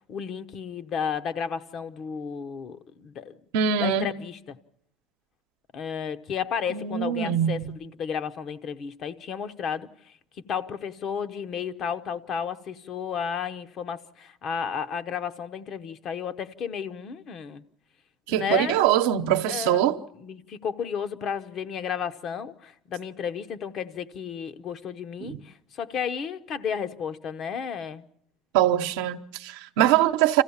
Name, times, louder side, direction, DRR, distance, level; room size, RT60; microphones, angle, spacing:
voice 1, 0.1-3.4 3.8-4.6 5.7-10.1 10.5-17.6 18.3-18.8 19.5-28.0, left 7 dB, 45° left, 0.8 m, -33 dB
voice 2, 3.5-4.1 6.7-7.7 18.3-20.0 25.2-25.4 28.5-30.4, right 10 dB, 85° right, 0.8 m, -23 dB
26.0 x 15.0 x 7.1 m
cardioid pair, 125°, 0 cm